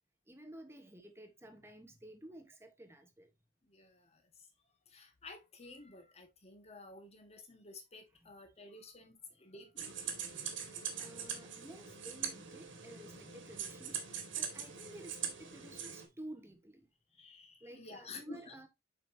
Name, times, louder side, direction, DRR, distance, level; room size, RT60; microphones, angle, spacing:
voice 1, 0.3-3.3 11.0-16.9 17.6-18.7, right 1 dB, 15° right, 1.1 m, -52 dB
voice 2, 3.6-4.2 4.9-10.0 17.1-18.6, left 3 dB, 35° left, 1.6 m, -52 dB
sound 1, 9.8-16.0, right 7 dB, 70° right, 2.0 m, -42 dB
7.4 x 5.2 x 2.7 m
head